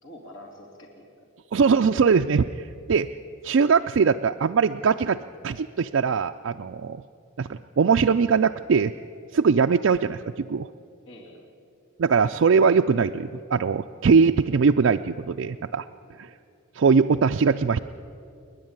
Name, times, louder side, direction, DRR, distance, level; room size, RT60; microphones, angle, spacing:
voice 1, 0.0-1.3 11.0-11.6 16.1-16.2, left 1 dB, 65° left, 1 dB, 2.9 m, -46 dB
voice 2, 1.5-3.1 3.4-7.0 7.4-8.9 9.3-10.7 12.0-15.9 16.2-16.3 16.7-17.8, right 5 dB, 60° right, 5 dB, 0.4 m, -21 dB
30.0 x 10.5 x 8.9 m, 2.5 s
head